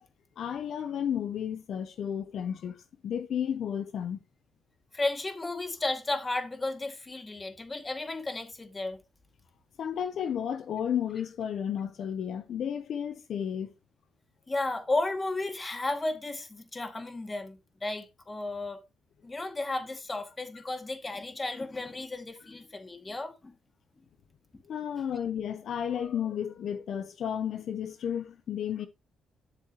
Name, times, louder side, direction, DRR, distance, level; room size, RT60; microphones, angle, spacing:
voice 1, 0.4-4.2 9.8-13.7 24.7-28.9, left 8 dB, 65° left, 0.7 m, -32 dB
voice 2, 4.9-9.0 14.5-18.8 19.2-23.5 24.5-24.6, left 2 dB, 20° left, 2.0 m, -33 dB
10.5 x 7.5 x 2.9 m
cardioid pair, 90°, 0 cm